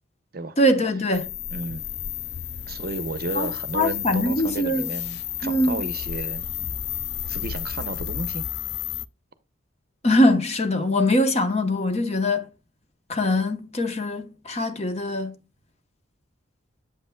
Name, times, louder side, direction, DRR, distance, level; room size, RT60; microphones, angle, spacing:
voice 1, 0.6-1.3 3.4-3.5 3.7-4.9 5.4-5.8 10.0-12.5 13.1-15.3, left 1 dB, 30° left, 0.9 m, -22 dB
sound 1, 1.1-9.1, left 10 dB, 55° left, 0.3 m, -32 dB
voice 2, 1.5-1.8 2.7-6.5 7.3-8.4, right 3 dB, 45° right, 0.7 m, -33 dB
8.0 x 7.9 x 2.2 m
head